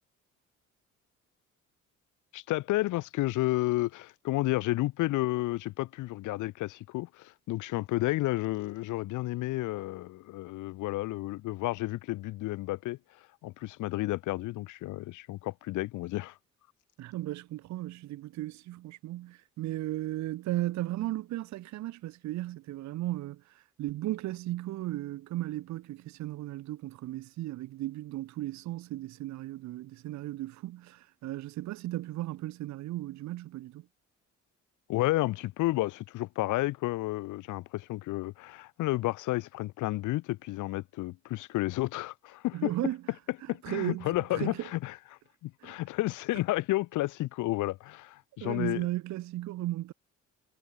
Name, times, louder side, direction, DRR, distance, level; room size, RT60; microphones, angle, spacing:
voice 1, 2.3-13.0 13.4-16.3 34.9-42.7 43.5-44.9 45.4-48.8, left 18 dB, 80° left, 0.6 m, -31 dB
voice 2, 17.0-33.9 42.5-43.0 43.4-44.7 45.6-45.8 48.4-49.9, right 16 dB, 70° right, 0.6 m, -36 dB
cardioid pair, 90°, 30 cm